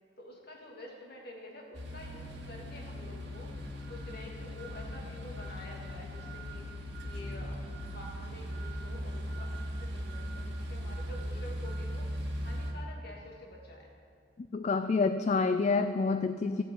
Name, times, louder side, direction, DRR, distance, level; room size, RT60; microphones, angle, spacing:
voice 1, 0.2-3.5 3.9-6.7 7.0-7.6 7.9-12.1 12.4-13.9, left 1 dB, 50° left, -1 dB, 2.3 m, -48 dB
sound 1, 1.7-12.7, equal, 60° right, 2.0 m, -39 dB
voice 2, 14.5-16.6, left 4 dB, 35° left, 11 dB, 0.3 m, -28 dB
13.5 x 7.3 x 8.5 m, 2.2 s
head